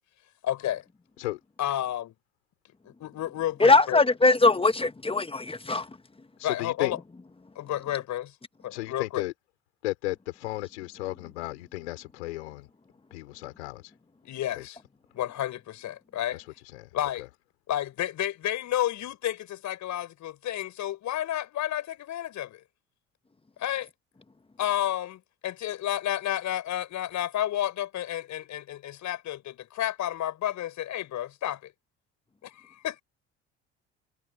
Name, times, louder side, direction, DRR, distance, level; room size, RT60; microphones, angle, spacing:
voice 1, 0.4-0.8 1.6-2.1 2.8-4.0 6.4-7.0 7.6-8.3 8.6-9.2 14.2-14.8 15.1-16.4 16.9-17.3 17.7-22.6 23.6-23.9 24.6-31.7 32.4-33.0, left 12 dB, 60° left, 5.4 m, -31 dB
voice 2, 3.6-5.9, left 3 dB, 15° left, 1.6 m, -21 dB
voice 3, 6.4-6.9 8.7-9.3 9.8-12.7 13.1-13.8 14.6-14.7 16.7-16.9, left 19 dB, 85° left, 5.5 m, -34 dB
hypercardioid pair, 60°, 33 cm